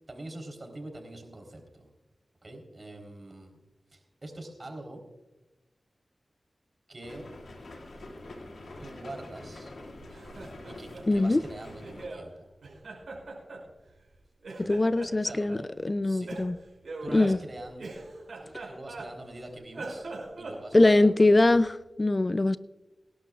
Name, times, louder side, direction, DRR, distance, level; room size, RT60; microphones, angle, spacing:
voice 1, 0.1-1.9 2.4-3.5 3.9-5.0 6.9-7.3 8.8-9.7 10.7-12.5 15.2-15.7 16.0-16.3 17.0-18.0 18.4-20.1 20.4-21.1, right 1 dB, 45° right, 3 dB, 3.9 m, -44 dB
sound 1, 7.0-12.1, left 2 dB, 85° left, 2.4 m, -45 dB
Laughter, 10.0-12.3 12.6-14.1 14.4-15.6 16.3-19.4 19.7-21.6, right 2 dB, 85° right, 5.5 m, -42 dB
voice 2, 11.1-11.4 14.6-16.6 17.1-17.4 20.7-22.6, left 2 dB, 35° left, 14 dB, 0.5 m, -22 dB
24.5 x 11.5 x 2.4 m, 1.1 s
cardioid pair, 50°, 0 cm